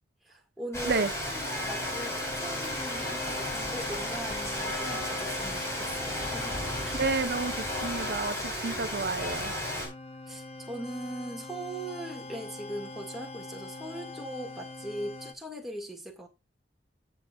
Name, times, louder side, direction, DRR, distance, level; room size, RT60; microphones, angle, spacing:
voice 1, 0.2-7.0 10.3-16.3, right 1 dB, ahead, 1.8 m, -40 dB
Rain, 0.7-9.9, left 1 dB, 15° left, 4.5 m, -33 dB
sound 1, 1.2-15.3, left 2 dB, 35° left, 0.9 m, -43 dB
voice 2, 7.0-9.5, right 3 dB, 60° right, 0.8 m, -30 dB
16.0 x 6.7 x 2.4 m
head